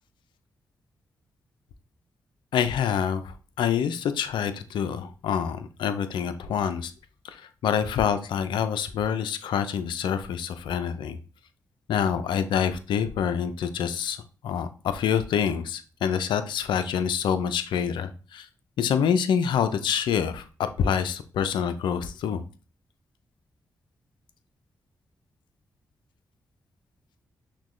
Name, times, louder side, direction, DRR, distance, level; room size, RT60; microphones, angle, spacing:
voice 1, 2.5-6.9 7.2-11.2 11.9-18.5 18.8-22.4, left 8 dB, 85° left, 10 dB, 0.4 m, -26 dB
5.9 x 2.2 x 3.1 m, 0.35 s
supercardioid pair, 50°, 8 cm